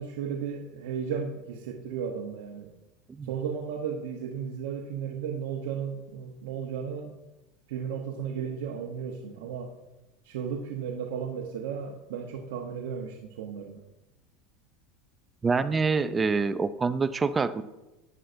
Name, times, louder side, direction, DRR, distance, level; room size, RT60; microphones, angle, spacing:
voice 1, 0.0-2.7 3.2-7.1 7.7-9.7 10.2-13.8, right 7 dB, 80° right, 1 dB, 0.8 m, -34 dB
voice 2, 15.4-17.6, right 4 dB, 15° right, 13 dB, 0.3 m, -26 dB
11.0 x 9.2 x 2.6 m, 1.0 s
supercardioid pair, 145°, 0 cm